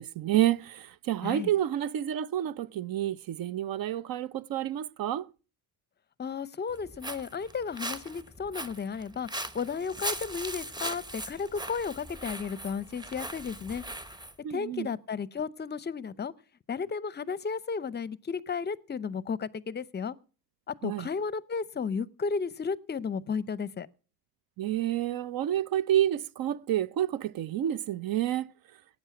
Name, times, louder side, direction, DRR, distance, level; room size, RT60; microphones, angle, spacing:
voice 1, 0.0-5.3 14.4-14.9 20.8-21.1 24.6-28.5, right 12 dB, 50° right, 0.7 m, -29 dB
voice 2, 6.2-9.3 9.5-13.8 14.5-16.3 16.7-20.1 20.7-23.9, left 5 dB, 25° left, 0.7 m, -33 dB
Walk footsteps, 6.7-14.3, right 1 dB, 10° right, 1.0 m, -39 dB
18.0 x 8.9 x 6.0 m
cardioid pair, 125°, 44 cm